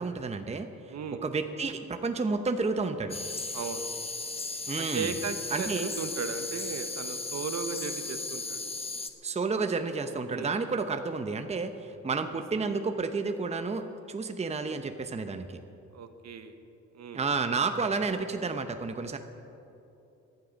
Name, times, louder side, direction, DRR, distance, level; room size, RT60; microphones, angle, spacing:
voice 1, 0.0-1.0 1.2-3.2 4.7-5.1 5.5-5.9 9.2-15.6 17.1-19.2, right 4 dB, 20° right, 7 dB, 0.8 m, -31 dB
voice 2, 0.9-1.2 3.5-3.9 4.8-8.6 10.3-10.6 15.9-16.5 16.9-17.2, right 5 dB, 60° right, 8 dB, 1.2 m, -36 dB
sound 1, 3.1-9.1, left 3 dB, 20° left, 1.0 m, -36 dB
18.0 x 12.0 x 5.2 m, 2.8 s
cardioid pair, 90°, 30 cm